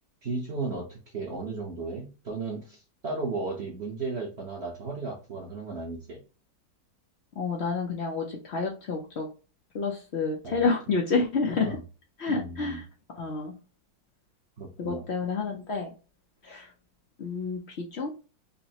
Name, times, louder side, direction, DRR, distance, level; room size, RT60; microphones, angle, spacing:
voice 1, 0.2-6.2 10.4-10.7 11.6-11.8 12.3-12.8 14.6-15.1, right 3 dB, 50° right, -1 dB, 0.9 m, -35 dB
voice 2, 7.4-9.3 9.7-11.7 12.2-12.8 13.1-13.5 14.8-15.9 16.4-16.7 17.2-18.1, left 4 dB, 80° left, -1 dB, 0.5 m, -29 dB
5.4 x 2.1 x 2.8 m, 0.33 s
omnidirectional pair, 2.0 m